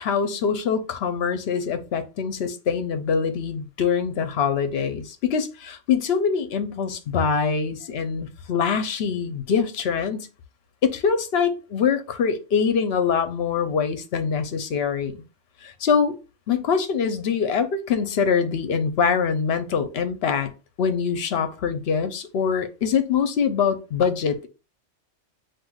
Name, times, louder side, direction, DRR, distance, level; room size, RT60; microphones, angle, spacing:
voice 1, 0.0-10.3 10.8-15.2 15.6-16.2 16.5-20.5 20.8-24.5, left 6 dB, 60° left, 9 dB, 0.9 m, -24 dB
7.8 x 2.6 x 2.3 m, 0.31 s
omnidirectional pair, 1.2 m